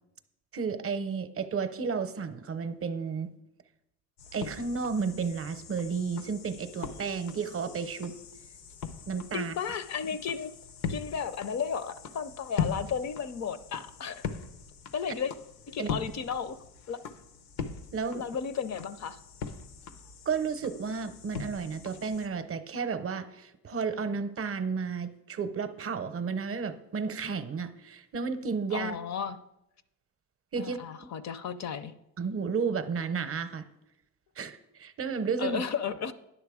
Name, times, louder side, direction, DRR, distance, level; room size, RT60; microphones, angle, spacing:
voice 1, 0.5-3.3 4.3-8.1 9.1-9.5 15.8-16.0 17.9-18.2 20.3-29.0 30.5-30.8 32.2-33.6 34.4-35.6, right 5 dB, 35° right, 11 dB, 0.7 m, -32 dB
sound 1, 4.2-22.3, left 6 dB, 90° left, 0.8 m, -41 dB
voice 2, 9.3-10.5 10.9-14.3 14.9-15.3 15.7-16.6 16.9-17.0 18.1-19.2 28.7-29.4 30.6-31.9 35.4-36.1, left 7 dB, 45° left, 14 dB, 0.5 m, -34 dB
10.0 x 6.5 x 4.8 m, 0.86 s
cardioid pair, 105°, 38 cm